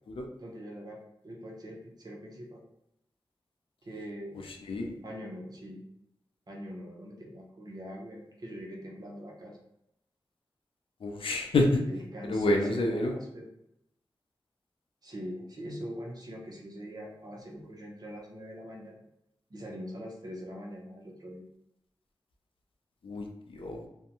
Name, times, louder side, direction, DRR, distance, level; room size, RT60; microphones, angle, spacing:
voice 1, 0.4-1.0 1.2-2.6 3.8-4.4 5.0-5.8 6.5-9.6 11.9-13.5 15.0-19.0 19.5-21.4, equal, 45° right, -1 dB, 0.7 m, -43 dB
voice 2, 11.0-11.8 12.3-13.1 23.0-23.9, left 2 dB, 80° left, 2 dB, 0.5 m, -28 dB
2.6 x 2.1 x 2.8 m, 0.81 s
wide cardioid pair, 85°, 9 cm